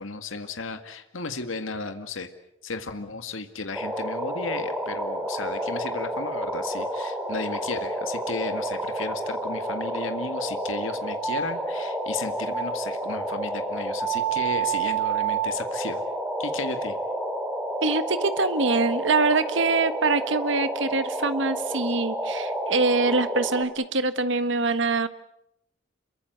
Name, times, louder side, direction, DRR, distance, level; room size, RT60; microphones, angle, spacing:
voice 1, 0.0-2.3 2.6-16.0 16.4-17.0, left 4 dB, 75° left, 8 dB, 1.9 m, -34 dB
sound 1, 3.7-23.6, right 2 dB, 5° right, 3.4 m, -29 dB
voice 2, 17.8-25.1, right 3 dB, 65° right, 12 dB, 1.4 m, -24 dB
27.5 x 23.0 x 8.0 m, 0.80 s
head